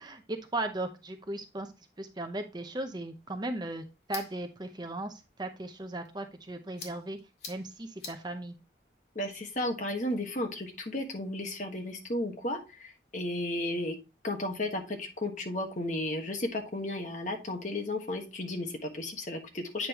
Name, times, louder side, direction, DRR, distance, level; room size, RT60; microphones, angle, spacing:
voice 1, 0.0-1.7 2.0-5.1 5.4-7.2 7.5-8.5, right 2 dB, 25° right, 6 dB, 0.7 m, -37 dB
sound 1, 3.1-11.0, left 4 dB, 65° left, 2.1 m, -51 dB
voice 2, 9.1-14.0 14.2-19.9, left 1 dB, 45° left, 4 dB, 1.3 m, -34 dB
8.6 x 5.2 x 2.9 m, 0.27 s
head